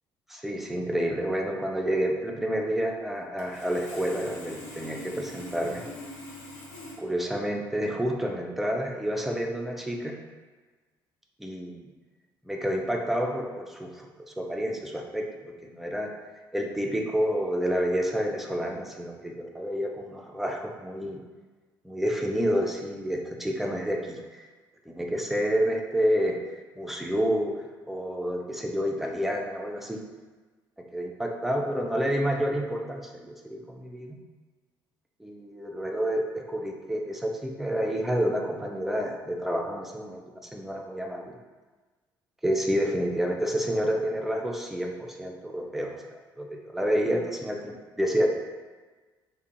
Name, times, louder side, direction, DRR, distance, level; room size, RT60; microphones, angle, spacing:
voice 1, 0.3-5.8 7.0-10.2 11.4-11.9 12.5-16.1 16.5-21.2 21.8-24.5 24.9-26.4 26.8-27.5 27.9-30.0 30.9-34.2 35.2-41.3 42.4-46.0 46.4-48.3, equal, ahead, 1 dB, 0.3 m, -29 dB
Sawing, 3.4-6.9, left 1 dB, 65° left, 0.6 m, -43 dB
2.4 x 2.1 x 2.6 m, 1.3 s
figure-of-eight pair, 50°, 12 cm